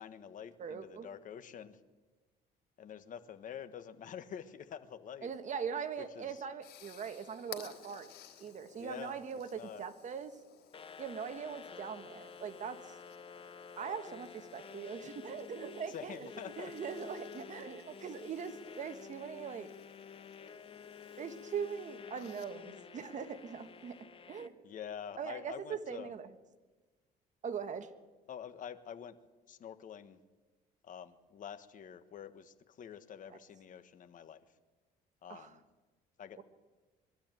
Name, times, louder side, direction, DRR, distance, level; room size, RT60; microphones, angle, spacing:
voice 1, 0.0-1.8 2.8-5.3 6.1-6.4 8.8-9.1 9.5-9.8 15.9-16.7 24.6-26.1 28.3-29.2 29.5-30.2 30.8-34.4 35.2-35.6 36.2-36.4, left 8 dB, 50° left, 10 dB, 1.4 m, -47 dB
voice 2, 0.6-1.1 5.2-8.1 8.4-10.4 11.0-13.0 13.8-19.7 21.2-24.0 24.3-24.5 25.2-26.3 27.4-27.9 33.3-33.4 35.3-35.6 36.4-36.5, right 7 dB, 45° right, 9 dB, 1.5 m, -41 dB
sound 1, 6.0-24.0, left 9 dB, 75° left, 3.6 m, -58 dB
sound 2, 10.7-24.5, left 7 dB, 35° left, 1.1 m, -51 dB
22.0 x 13.0 x 9.1 m, 1.3 s
cardioid pair, 110°, 17 cm